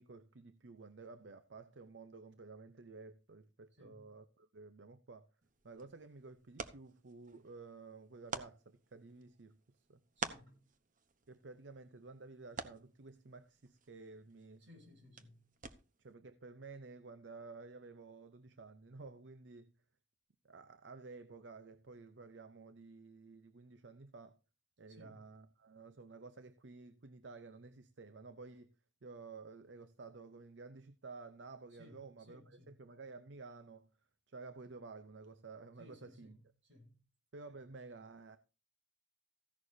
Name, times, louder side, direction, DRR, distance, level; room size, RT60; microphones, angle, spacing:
voice 1, 0.0-5.3 5.6-10.0 11.3-14.7 16.0-19.7 20.4-24.4 24.8-28.7 29.0-33.9 34.3-36.4 37.3-38.4, right 3 dB, 70° right, 0.7 m, -53 dB
voice 2, 3.8-4.1 10.2-10.6 14.6-15.4 24.9-25.2 31.7-32.7 35.8-36.9, left 1 dB, 85° right, 6.6 m, -60 dB
sound 1, 5.4-16.1, right 5 dB, 45° right, 1.0 m, -50 dB
15.5 x 11.0 x 2.7 m
head